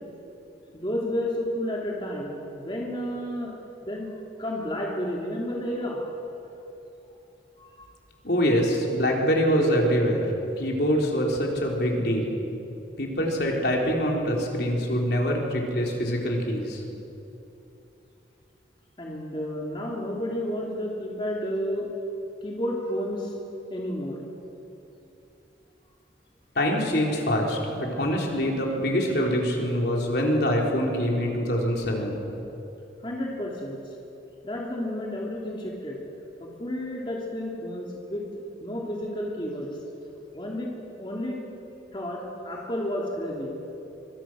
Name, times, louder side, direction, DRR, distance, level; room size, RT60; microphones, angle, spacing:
voice 1, 0.7-3.5 3.8-4.1 4.4-6.0 7.6-7.9 19.0-21.9 22.4-23.4 23.7-24.2 33.0-33.8 34.4-36.0 36.4-38.2 38.6-39.7 40.3-40.7 41.0-41.4 41.9-43.5, equal, 25° left, -3 dB, 3.0 m, -31 dB
voice 2, 8.2-10.2 10.6-12.3 13.0-16.8 26.6-32.2, equal, 60° left, -1 dB, 4.0 m, -24 dB
25.5 x 24.5 x 6.4 m, 2.9 s
head